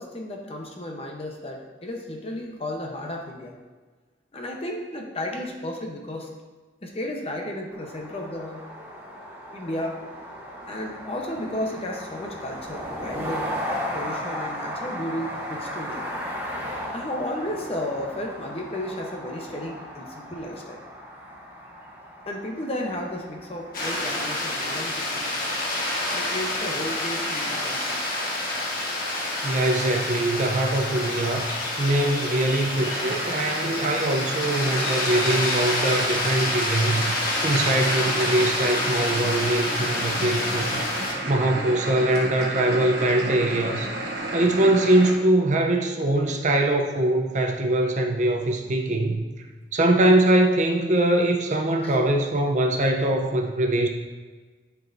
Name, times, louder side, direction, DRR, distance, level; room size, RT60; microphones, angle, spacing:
voice 1, 0.0-3.5 4.3-6.3 6.8-8.6 9.5-9.9 10.7-16.1 16.9-20.8 22.3-25.3 26.1-28.0 35.2-35.4 51.8-51.9, left 1 dB, 35° left, 1 dB, 0.9 m, -33 dB
sound 1, 7.7-26.6, equal, 10° right, 1.0 m, -36 dB
sound 2, 23.7-41.1, left 1 dB, 50° left, 1.4 m, -28 dB
voice 2, 29.4-40.7 41.3-43.9 44.3-49.2 49.7-53.9, right 1 dB, 40° right, 3 dB, 0.6 m, -22 dB
sound 3, 32.8-45.1, right 1 dB, 60° right, 1.1 m, -33 dB
11.0 x 4.6 x 2.6 m, 1.3 s
head